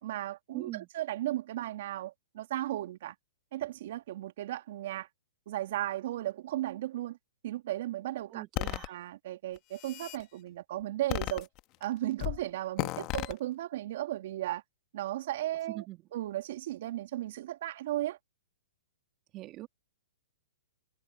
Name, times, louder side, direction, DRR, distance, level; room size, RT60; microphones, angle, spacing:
voice 1, 0.0-3.1 3.5-5.1 5.5-7.2 7.4-11.5 11.8-14.6 14.9-15.8 16.1-18.2, right 14 dB, 55° right, 2.8 m, -35 dB
voice 2, 0.5-0.9 8.3-9.0 12.9-13.1 15.7-16.0 19.3-19.7, right 16 dB, 30° right, 2.5 m, -42 dB
sound 1, 8.6-8.9 9.6-10.2 11.1-11.8 12.2-12.4 12.8-13.3, left 21 dB, 35° left, 1.7 m, -34 dB
hypercardioid pair, 130°, 0 cm